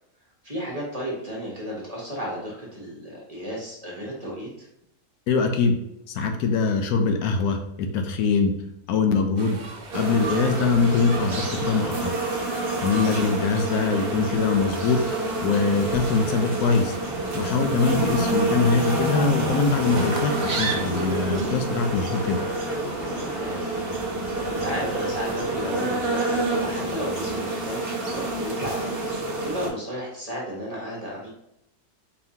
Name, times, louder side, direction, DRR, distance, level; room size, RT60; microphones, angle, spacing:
voice 1, 0.4-4.7 13.0-13.2 23.3-23.8 24.4-29.0 29.4-31.3, equal, 30° right, -5 dB, 1.0 m, -33 dB
voice 2, 5.3-5.8 6.1-7.6 7.9-8.5 8.9-9.6 9.9-12.1 12.8-15.0 15.4-17.0 17.3-22.4, left 4 dB, 75° left, 5 dB, 1.1 m, -23 dB
sound 1, 9.4-21.4, right 3 dB, 80° right, 0.4 m, -36 dB
sound 2, 9.9-29.7, right 2 dB, 45° right, 0.9 m, -28 dB
sound 3, 17.8-25.7, left 1 dB, 35° left, 0.6 m, -35 dB
4.4 x 3.5 x 2.7 m, 0.79 s
omnidirectional pair, 1.6 m